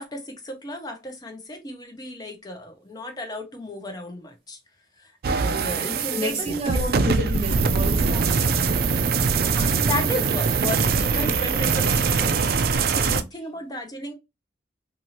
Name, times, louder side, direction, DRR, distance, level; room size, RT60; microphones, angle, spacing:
voice 1, 0.0-4.6 5.0-6.6 9.5-12.4 12.7-14.1, left 1 dB, 20° left, 0.7 m, -34 dB
sound 1, 5.2-13.2, right 5 dB, 55° right, 0.3 m, -22 dB
voice 2, 6.1-8.6 9.1-10.1 13.1-13.2, equal, 30° right, 1.3 m, -31 dB
2.7 x 2.6 x 2.9 m
head